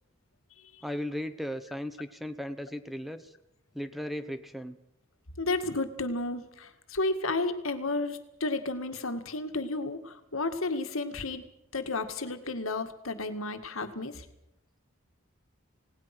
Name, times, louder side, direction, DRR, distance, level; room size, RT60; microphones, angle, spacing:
voice 1, 0.8-3.3 3.7-4.8, equal, ahead, 10 dB, 0.9 m, -36 dB
voice 2, 5.4-11.4 11.7-14.3, left 2 dB, 75° left, 8 dB, 2.0 m, -32 dB
27.5 x 18.5 x 6.0 m, 0.82 s
head